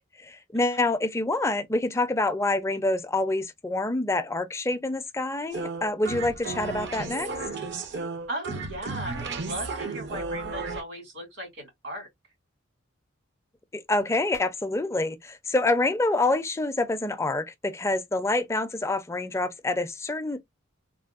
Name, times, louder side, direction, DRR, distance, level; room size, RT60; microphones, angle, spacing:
voice 1, 0.2-7.3 13.7-20.4, left 2 dB, 15° left, 0.4 m, -27 dB
sound 1, 5.5-10.8, right 3 dB, 60° right, 0.6 m, -33 dB
voice 2, 8.3-12.1, right 1 dB, 75° right, 2.3 m, -37 dB
3.4 x 2.2 x 2.4 m
head